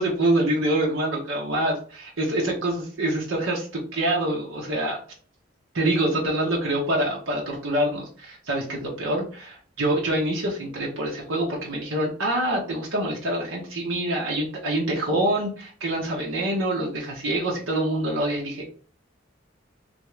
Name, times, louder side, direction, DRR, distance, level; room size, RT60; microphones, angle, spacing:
voice 1, 0.0-3.7 3.9-5.0 5.7-18.6, right 1 dB, 85° right, -2 dB, 1.0 m, -25 dB
3.5 x 2.6 x 3.2 m, 0.42 s
head